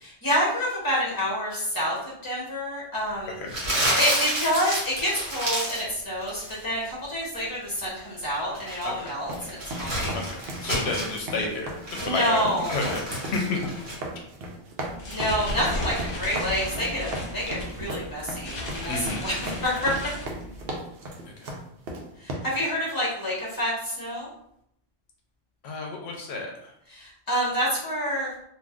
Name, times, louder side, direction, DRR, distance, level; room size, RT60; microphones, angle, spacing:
voice 1, 0.0-3.4 4.0-10.2 12.0-12.8 15.1-19.9 22.2-24.3 26.9-28.3, equal, 20° left, -5 dB, 1.0 m, -28 dB
Crumpling crinkling, 3.5-5.9 6.2-6.6 8.3-11.2 11.6-14.0, right 1 dB, 50° right, 1.2 m, -30 dB
sound 1, 9.2-22.3, right 1 dB, 70° right, 0.9 m, -37 dB
voice 2, 10.1-13.6 18.9-19.3 21.2-21.3 25.6-26.5, left 3 dB, 80° left, 1 dB, 0.8 m, -31 dB
sound 2, 14.8-20.8, left 1 dB, 60° left, 1.0 m, -35 dB
2.4 x 2.4 x 3.5 m, 0.73 s
omnidirectional pair, 1.1 m